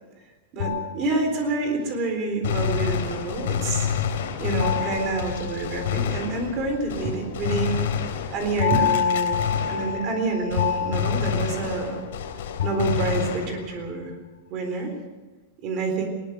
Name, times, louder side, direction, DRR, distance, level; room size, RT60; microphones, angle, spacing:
voice 1, 0.5-3.9 4.4-8.0 8.3-12.0 12.6-14.1 14.5-14.9 15.6-16.1, right 3 dB, 30° right, 5 dB, 3.9 m, -27 dB
sound 1, 0.6-1.8 4.6-6.2 8.6-12.2 12.6-13.5, left 9 dB, 90° left, 1.9 m, -28 dB
Gunshot gunfire, 2.4-10.2 10.5-13.9, left 8 dB, 65° left, 3.4 m, -29 dB
20.0 x 19.0 x 6.7 m, 1.2 s
supercardioid pair, 180°, 0 cm